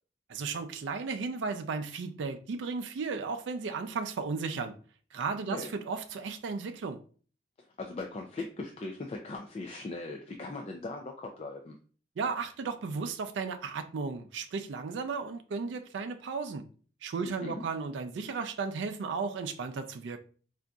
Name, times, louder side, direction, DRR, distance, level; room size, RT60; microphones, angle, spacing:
voice 1, 0.3-4.7 5.1-7.0 12.2-16.6 17.0-20.2, right 4 dB, 75° right, 0.4 m, -35 dB
voice 2, 7.8-11.7 17.2-17.6, left 3 dB, 35° left, 0.3 m, -39 dB
3.8 x 2.5 x 2.3 m
head